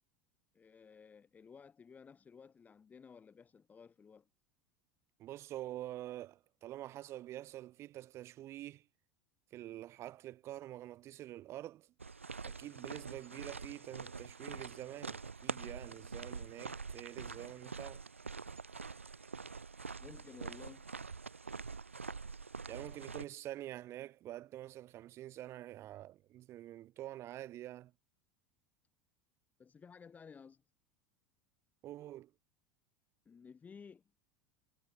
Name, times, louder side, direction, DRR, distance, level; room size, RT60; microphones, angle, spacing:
voice 1, 0.5-4.3 20.0-20.9 29.6-30.6 33.2-34.0, left 6 dB, 25° left, 3.4 m, -55 dB
voice 2, 5.2-8.8 9.5-11.9 12.4-18.0 22.7-27.9 31.8-32.3, right 14 dB, 45° right, 2.0 m, -47 dB
sound 1, 12.0-23.2, right 4 dB, 90° right, 0.4 m, -45 dB
figure-of-eight pair, 75°, 7 cm